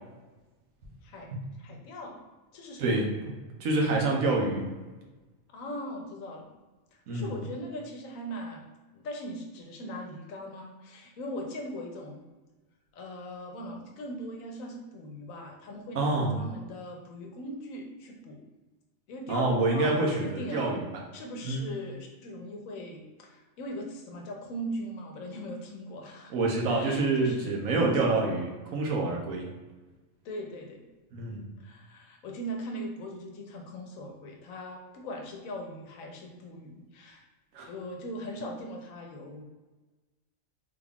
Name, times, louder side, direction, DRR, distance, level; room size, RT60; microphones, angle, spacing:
voice 1, 1.6-2.2 2.5-3.0 5.5-6.5 6.9-8.6 8.9-12.2 12.9-18.4 19.1-20.7 21.1-26.3 26.6-28.4 30.2-30.8 31.6-37.3 37.6-39.4, equal, 85° left, 1 dB, 1.1 m, -40 dB
voice 2, 2.8-3.3 3.6-4.7 7.1-7.3 15.9-16.4 19.3-20.8 21.4-21.6 26.3-29.5 31.1-31.4 37.5-37.7, right 2 dB, 80° right, 0 dB, 1.2 m, -27 dB
3.8 x 2.4 x 3.4 m, 1.2 s
omnidirectional pair, 1.4 m